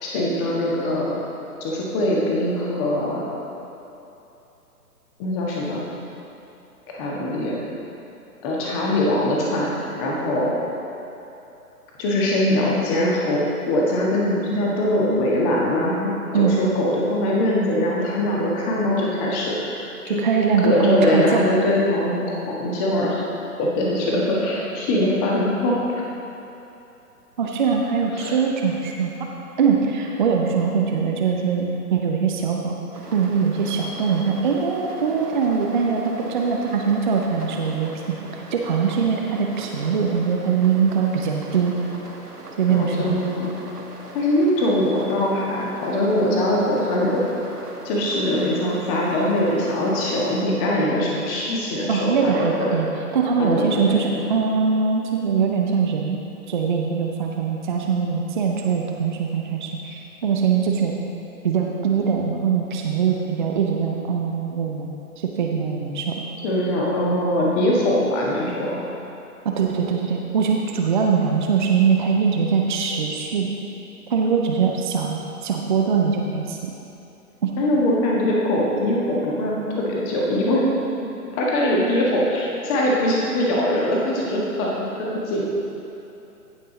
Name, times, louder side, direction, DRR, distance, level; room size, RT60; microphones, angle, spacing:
voice 1, 0.0-1.2 1.6-3.3 5.2-5.9 6.9-7.6 8.4-10.6 12.0-20.2 20.6-23.2 23.6-26.0 28.2-28.4 42.7-43.5 44.1-52.8 53.4-54.3 66.4-68.8 77.6-80.6 81.3-85.4, left 1 dB, 20° left, -4 dB, 1.5 m, -22 dB
voice 2, 20.1-21.5 27.4-29.3 29.6-32.8 33.1-38.2 38.5-41.7 42.6-43.2 51.9-56.2 56.5-60.9 61.4-66.2 69.4-73.5 74.1-76.7 77.4-77.5, right 6 dB, 30° right, 1 dB, 0.6 m, -22 dB
sound 1, 32.9-50.4, right 2 dB, 80° right, 1.4 m, -40 dB
16.0 x 5.4 x 3.9 m, 3.0 s
figure-of-eight pair, 130°, 46 cm